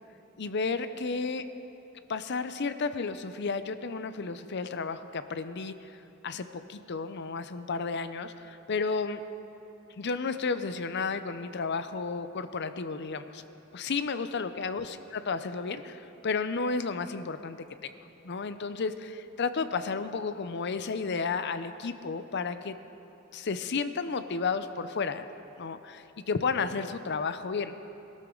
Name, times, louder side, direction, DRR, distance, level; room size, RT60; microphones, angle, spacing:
voice 1, 0.4-1.4 2.1-9.2 10.0-13.4 13.7-17.9 18.2-22.7 23.3-25.3 25.6-27.7, left 4 dB, 55° left, 11 dB, 0.6 m, -32 dB
21.0 x 13.0 x 3.8 m, 3.0 s
head